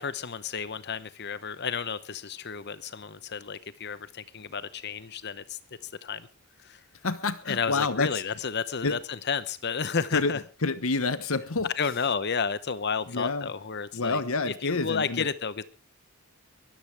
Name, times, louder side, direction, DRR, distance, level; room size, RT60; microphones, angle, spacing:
voice 1, 0.0-6.3 6.6-6.8 7.5-10.4 11.8-15.6, left 6 dB, 50° left, 0.8 m, -32 dB
voice 2, 7.0-8.2 8.8-9.0 10.1-11.7 13.1-13.5 13.9-15.2, left 3 dB, 70° left, 1.1 m, -28 dB
23.0 x 14.0 x 3.4 m
head